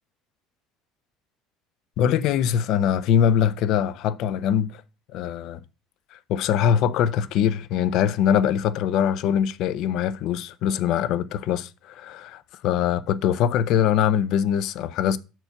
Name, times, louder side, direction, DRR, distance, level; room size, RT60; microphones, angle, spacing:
voice 1, 2.0-4.8 5.1-5.6 6.1-15.2, left 9 dB, 55° left, 0.5 m, -23 dB
6.5 x 4.5 x 5.8 m
cardioid pair, 145°, 0 cm